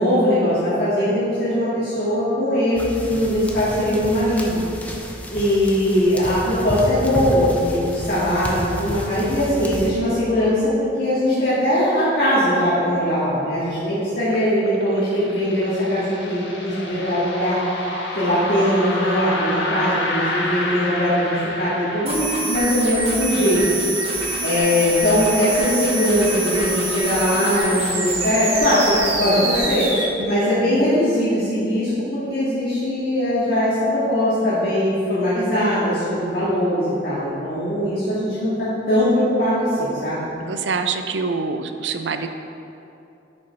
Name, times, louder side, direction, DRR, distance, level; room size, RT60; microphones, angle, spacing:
voice 1, 0.0-4.6 5.3-17.6 18.2-23.6 24.4-29.9 30.2-40.2, equal, 60° left, -11 dB, 2.0 m, -20 dB
sound 1, 2.8-9.9, equal, 10° left, 0.6 m, -31 dB
sound 2, 14.3-22.1, left 2 dB, 85° left, 1.3 m, -29 dB
sound 3, 22.1-30.1, right 2 dB, 35° right, 1.5 m, -25 dB
voice 2, 40.4-42.3, right 4 dB, 80° right, 7 dB, 0.5 m, -25 dB
10.0 x 5.4 x 4.2 m, 2.7 s
head